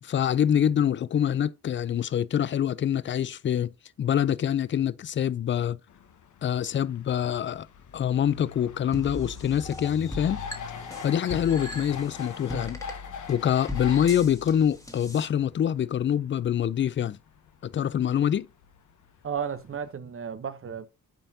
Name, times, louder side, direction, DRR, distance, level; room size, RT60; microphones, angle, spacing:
voice 1, 0.0-3.7 4.0-5.8 6.4-7.7 7.9-10.4 11.0-12.8 13.3-17.2 17.6-18.5, left 9 dB, 35° left, 0.4 m, -25 dB
sound 1, 5.9-19.9, left 6 dB, 55° left, 0.9 m, -43 dB
sound 2, 8.9-15.3, left 2 dB, 10° left, 1.5 m, -39 dB
voice 2, 19.2-20.9, right 7 dB, 40° right, 0.8 m, -33 dB
9.1 x 4.3 x 2.7 m
cardioid pair, 75°, 35 cm